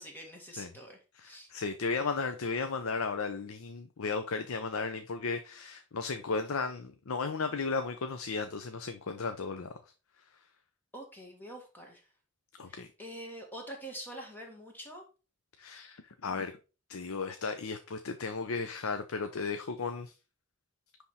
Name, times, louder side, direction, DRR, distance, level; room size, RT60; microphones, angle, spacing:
voice 1, 0.0-1.5 10.9-12.0 12.7-15.0, right 1 dB, 10° left, 1.8 m, -45 dB
voice 2, 1.1-9.7 12.6-12.9 15.6-16.5 16.9-20.1, left 4 dB, 85° left, 0.7 m, -35 dB
9.8 x 3.5 x 4.3 m
head